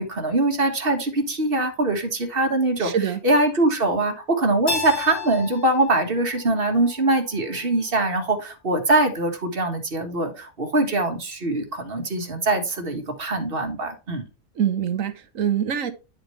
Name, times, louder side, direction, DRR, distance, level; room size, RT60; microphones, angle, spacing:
voice 1, 0.0-14.2, right 2 dB, 40° right, 1.6 m, -23 dB
voice 2, 2.8-3.2 14.6-15.9, right 9 dB, 70° right, 1.3 m, -24 dB
Keyboard (musical), 4.7-7.5, left 4 dB, 80° left, 2.2 m, -33 dB
10.0 x 5.2 x 3.1 m
omnidirectional pair, 1.5 m